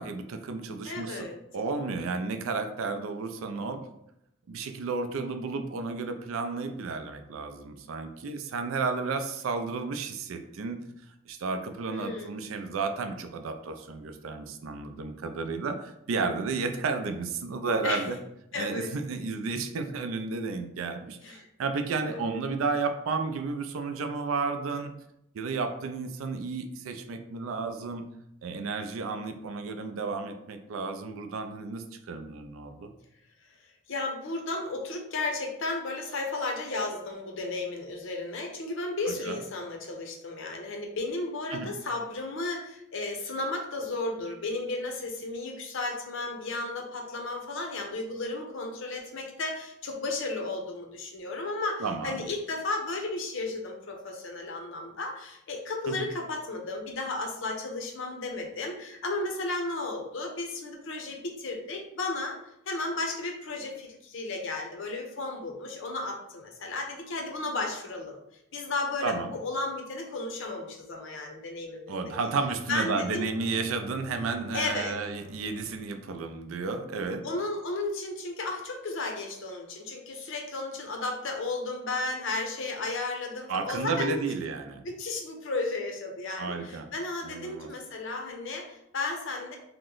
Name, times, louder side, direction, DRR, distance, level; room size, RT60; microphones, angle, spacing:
voice 1, 0.0-1.3 1.5-3.8 4.5-10.8 11.3-18.2 18.6-24.9 25.3-28.0 28.4-32.9 39.1-39.4 41.5-41.7 51.8-52.2 55.9-56.1 69.0-69.3 71.9-77.2 83.5-84.8 86.4-86.9 87.2-87.7, right 4 dB, 75° right, 7 dB, 0.4 m, -32 dB
voice 2, 0.8-1.4 11.9-12.3 17.8-18.0 18.5-18.9 21.2-21.5 22.0-22.4 33.9-62.4 62.7-68.2 68.5-71.9 72.7-73.3 74.5-75.0 77.2-84.3 84.8-89.6, left 2 dB, 65° left, 2 dB, 0.6 m, -34 dB
Bowed string instrument, 72.3-76.9, left 2 dB, 30° right, 0.6 m, -47 dB
2.9 x 2.1 x 3.7 m, 0.80 s
head